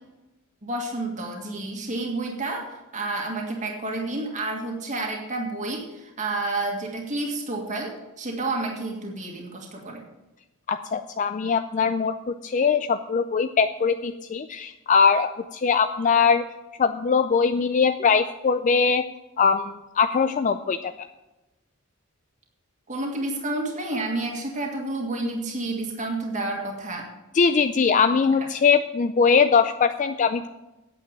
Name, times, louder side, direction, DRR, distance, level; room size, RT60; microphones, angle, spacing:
voice 1, 0.6-10.0 22.9-27.1, right 2 dB, 35° right, 0 dB, 1.9 m, -30 dB
voice 2, 10.7-16.4 16.8-19.0 19.4-21.1 27.3-30.5, left 5 dB, 35° left, 9 dB, 0.4 m, -21 dB
9.0 x 8.2 x 6.9 m, 1.0 s
head